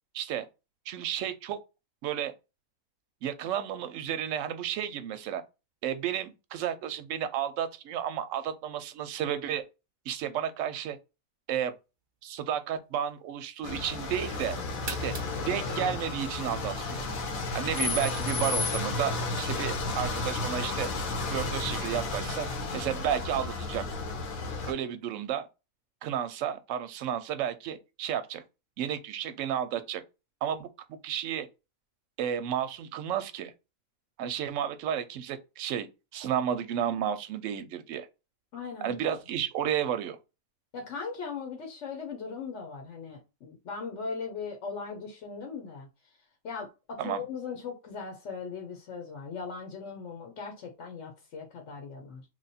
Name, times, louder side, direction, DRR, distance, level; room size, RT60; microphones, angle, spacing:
voice 1, 0.9-1.6 2.0-2.3 3.2-5.4 5.8-9.6 10.1-11.0 11.5-11.7 12.2-14.6 14.9-15.1 15.5-17.0 17.5-20.9 21.3-22.5 22.7-23.8 24.7-25.5 26.0-28.4 28.8-30.0 30.4-31.5 32.2-33.5 34.2-35.9 36.1-38.1 38.8-40.2 47.0-47.2, right 9 dB, 70° right, 0.9 m, -32 dB
sound 1, 11.8-13.5 14.0-16.9, right 3 dB, 35° right, 0.4 m, -46 dB
sound 2, 13.6-24.7, left 3 dB, 80° left, 1.3 m, -32 dB
voice 2, 38.5-39.2 40.7-45.9 46.4-52.2, left 5 dB, 60° left, 1.1 m, -39 dB
3.2 x 2.3 x 4.1 m
omnidirectional pair, 1.5 m